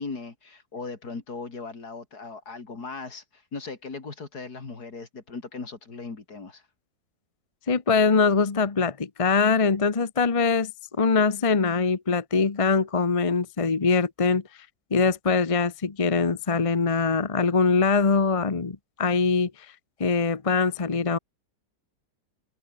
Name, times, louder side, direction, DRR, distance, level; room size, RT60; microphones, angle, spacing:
voice 1, 0.0-6.6, left 4 dB, 60° left, 3.8 m, -38 dB
voice 2, 7.7-10.7 11.0-14.4 14.9-19.5 20.0-21.2, left 4 dB, 25° left, 0.8 m, -23 dB
open air
omnidirectional pair, 1.9 m